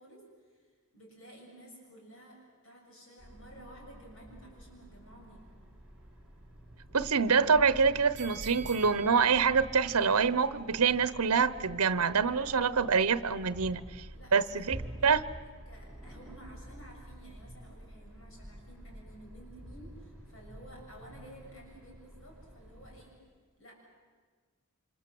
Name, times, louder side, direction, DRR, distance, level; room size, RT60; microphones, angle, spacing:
voice 1, 0.0-5.5 14.1-23.2 23.6-23.7, right 1 dB, 60° left, 0 dB, 7.1 m, -53 dB
sound 1, 3.2-23.1, right 1 dB, 5° right, 5.0 m, -49 dB
voice 2, 6.9-13.8 14.3-14.8 15.0-15.2, right 5 dB, 75° right, 15 dB, 0.9 m, -26 dB
sound 2, 8.2-11.3 11.7-11.8, right 6 dB, 30° right, 4.4 m, -48 dB
28.5 x 26.0 x 7.7 m, 1.5 s
head